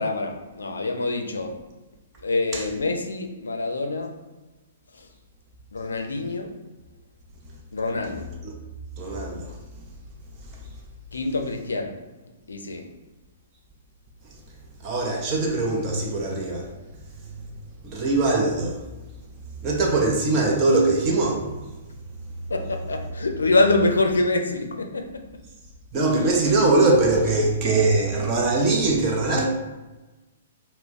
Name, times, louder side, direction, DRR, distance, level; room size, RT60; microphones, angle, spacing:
voice 1, 0.0-1.5 2.2-4.1 4.9-5.1 5.7-6.5 7.7-8.3 11.1-12.0 12.5-12.8 22.5-25.3 26.1-26.3, left 2 dB, 75° left, 4 dB, 0.4 m, -25 dB
voice 2, 9.0-9.5 14.8-16.7 17.8-18.8 19.6-21.5 25.9-29.4, right 2 dB, 30° right, -1 dB, 0.5 m, -22 dB
2.2 x 2.0 x 3.8 m, 1.1 s
figure-of-eight pair, 115°, 0 cm